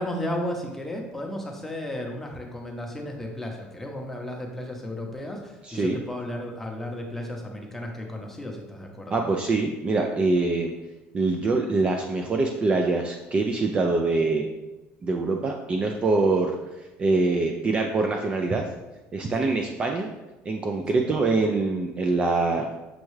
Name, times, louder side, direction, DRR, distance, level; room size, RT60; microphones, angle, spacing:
voice 1, 0.0-9.2 19.4-19.5, left 1 dB, 5° left, 0 dB, 0.7 m, -34 dB
voice 2, 5.6-6.0 9.1-10.7 11.1-14.5 15.0-16.6 17.0-18.7 19.1-20.1 20.5-22.7, right 3 dB, 25° right, 3 dB, 0.3 m, -24 dB
6.2 x 2.3 x 3.1 m, 1.0 s
cardioid pair, 135°, 4 cm